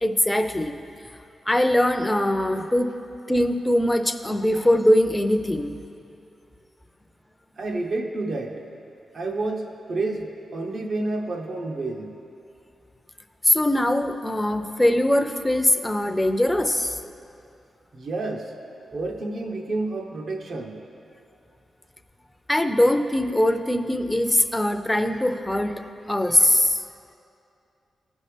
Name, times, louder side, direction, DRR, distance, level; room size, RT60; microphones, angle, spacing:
voice 1, 0.0-0.8 1.5-2.9 3.3-5.7 13.4-17.0 22.5-25.8 26.1-26.8, left 1 dB, 10° left, 6 dB, 0.5 m, -21 dB
voice 2, 7.6-8.6 9.1-12.1 17.9-18.5 18.9-20.8, right 2 dB, 65° right, 1 dB, 1.0 m, -29 dB
15.5 x 5.4 x 3.3 m, 2.6 s
cardioid pair, 70°, 0 cm